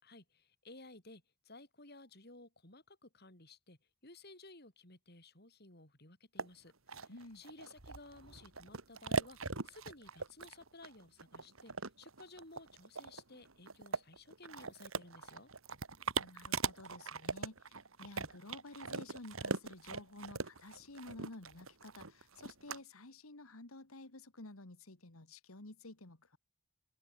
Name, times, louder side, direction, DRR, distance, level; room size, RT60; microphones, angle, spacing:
voice 1, 0.0-15.5, left 2 dB, 50° left, 5.9 m, -56 dB
sound 1, 6.4-6.5 6.9-22.8, right 4 dB, 80° right, 2.8 m, -40 dB
voice 2, 7.1-7.4 16.2-26.4, left 2 dB, 90° left, 2.3 m, -52 dB
open air
head